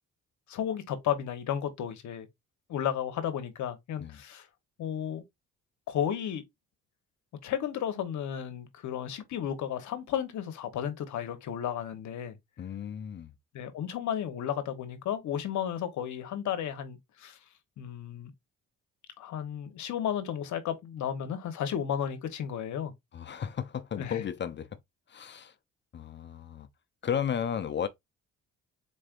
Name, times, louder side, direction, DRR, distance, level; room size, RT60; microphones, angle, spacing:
voice 1, 0.5-2.3 2.7-4.5 4.8-5.2 5.9-6.4 7.4-12.4 13.5-17.4 17.8-18.3 19.2-22.9 24.0-24.2, left 9 dB, 70° left, 0.9 m, -33 dB
voice 2, 12.6-13.3 23.1-24.7 25.1-25.5 25.9-26.7 27.0-27.9, left 8 dB, 40° left, 0.5 m, -34 dB
4.2 x 3.3 x 2.4 m
cardioid pair, 90°, 30 cm